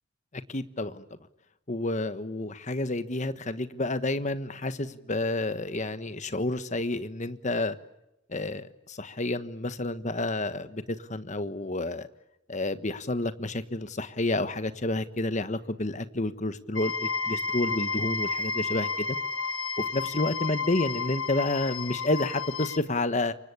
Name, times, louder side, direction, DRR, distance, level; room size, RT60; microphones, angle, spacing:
voice 1, 0.3-1.0 1.7-7.8 8.3-12.1 12.5-19.2 19.8-23.3, left 2 dB, 35° left, 12 dB, 1.3 m, -30 dB
sound 1, 16.8-22.8, left 4 dB, 80° left, 2.0 m, -31 dB
28.5 x 24.0 x 8.5 m, 0.87 s
head